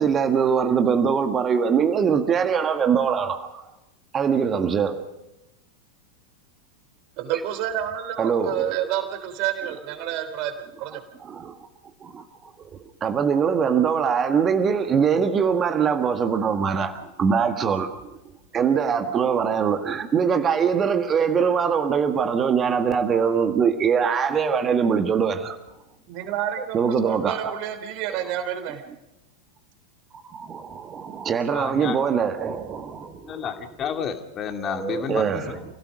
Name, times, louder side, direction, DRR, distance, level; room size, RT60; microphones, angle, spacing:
voice 1, 0.0-3.6 4.1-5.0 7.3-7.4 8.2-8.8 11.2-11.6 12.0-12.2 13.0-18.0 18.5-25.6 26.6-27.5 28.1-28.2 30.3-33.2 34.6-35.5, right 6 dB, 25° right, 1.7 m, -22 dB
voice 2, 7.2-11.0 26.1-28.8, right 11 dB, 45° right, 3.4 m, -29 dB
voice 3, 31.5-32.0 33.3-35.6, left 7 dB, 30° left, 2.6 m, -31 dB
29.0 x 17.0 x 5.3 m
figure-of-eight pair, 90°, 0 cm